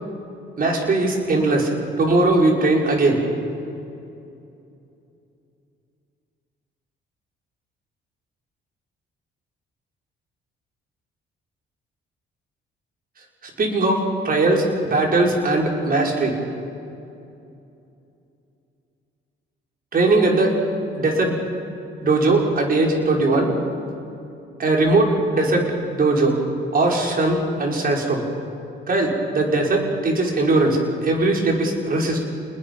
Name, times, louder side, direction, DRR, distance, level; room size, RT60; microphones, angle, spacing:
voice 1, 0.6-1.7 2.0-3.2 13.4-16.3 19.9-20.5 20.9-21.4 22.0-23.5 24.6-26.4 26.7-28.2 28.9-32.2, right 2 dB, 45° right, 0 dB, 5.3 m, -20 dB
29.0 x 20.5 x 5.5 m, 2.7 s
cardioid pair, 90°, 20 cm